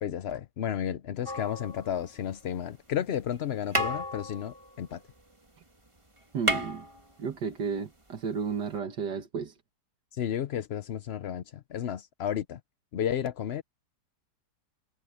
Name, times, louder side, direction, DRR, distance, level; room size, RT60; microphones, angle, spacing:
voice 1, 0.0-5.0 10.1-12.6 12.9-13.6, left 9 dB, 60° left, 0.7 m, -32 dB
sound 1, 1.2-2.4 3.3-3.4 3.7-5.6 5.9-6.0 6.2-7.6 8.7-8.8, equal, 15° right, 2.3 m, -33 dB
voice 2, 6.3-6.9 7.2-9.5, right 6 dB, 80° right, 2.1 m, -33 dB
omnidirectional pair, 1.8 m